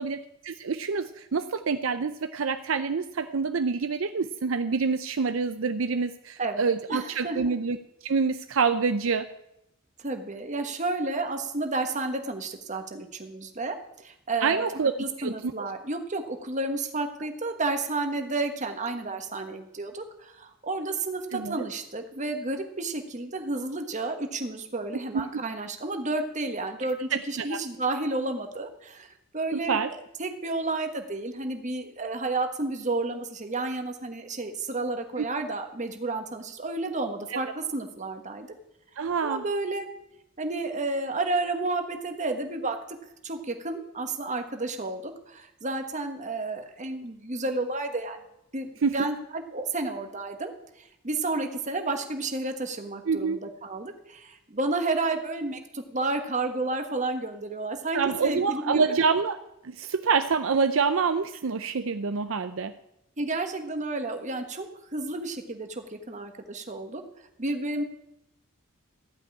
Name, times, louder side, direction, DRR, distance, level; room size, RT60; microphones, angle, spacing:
voice 1, 0.0-7.8 8.0-9.3 14.4-14.9 15.2-15.5 21.3-21.6 25.1-25.4 27.1-27.6 29.5-29.9 35.2-35.3 37.3-37.4 39.0-39.4 48.8-49.0 53.1-53.4 57.9-59.4 59.6-62.7, right 5 dB, 70° right, 10 dB, 0.6 m, -27 dB
voice 2, 6.4-7.4 10.0-13.8 14.0-14.6 15.0-29.8 30.2-38.5 39.2-39.9 40.4-42.8 43.2-48.2 48.5-50.5 50.8-58.8 63.2-67.0 67.4-67.8, right 2 dB, 35° right, 5 dB, 1.4 m, -31 dB
15.0 x 5.4 x 9.7 m, 0.83 s
head